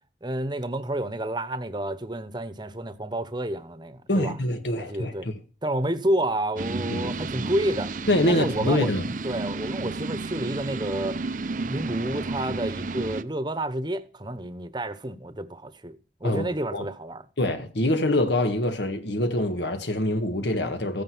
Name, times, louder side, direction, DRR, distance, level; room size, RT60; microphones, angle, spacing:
voice 1, 0.2-4.4 4.8-5.3 5.6-7.9 8.3-8.9 9.2-11.2 11.6-17.2, right 1 dB, 25° right, 1.1 m, -30 dB
voice 2, 4.1-5.3 6.9-7.1 8.1-9.1 16.2-16.9 17.4-21.0, left 1 dB, 75° left, 1.8 m, -25 dB
sound 1, 6.6-13.2, right 3 dB, 45° right, 0.7 m, -32 dB
15.0 x 9.3 x 6.2 m
head